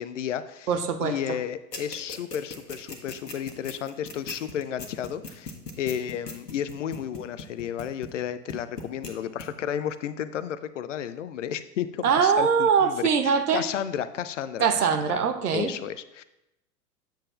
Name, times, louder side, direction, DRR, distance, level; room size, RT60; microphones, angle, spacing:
voice 1, 0.0-0.7 1.0-15.2 15.5-16.2, left 9 dB, 50° left, 13 dB, 0.5 m, -33 dB
voice 2, 0.7-1.2 12.0-13.6 14.6-15.7, right 6 dB, 65° right, 8 dB, 0.9 m, -22 dB
sound 1, 1.7-8.2 8.5-9.1 9.4-9.5, left 4 dB, 75° left, 1.3 m, -38 dB
8.7 x 7.4 x 2.3 m, 0.89 s
figure-of-eight pair, 95°, 48 cm